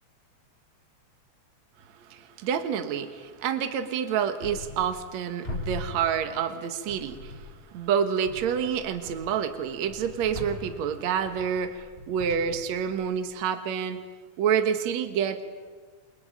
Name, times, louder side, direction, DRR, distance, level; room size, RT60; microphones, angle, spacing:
voice 1, 2.0-14.0 14.4-15.4, right 8 dB, 70° right, 9 dB, 2.6 m, -28 dB
sound 1, 4.4-5.2 5.4-6.5 6.9-7.7 8.2-13.3, left 2 dB, 20° left, 5.7 m, -41 dB
29.0 x 23.0 x 9.0 m, 1.5 s
omnidirectional pair, 3.4 m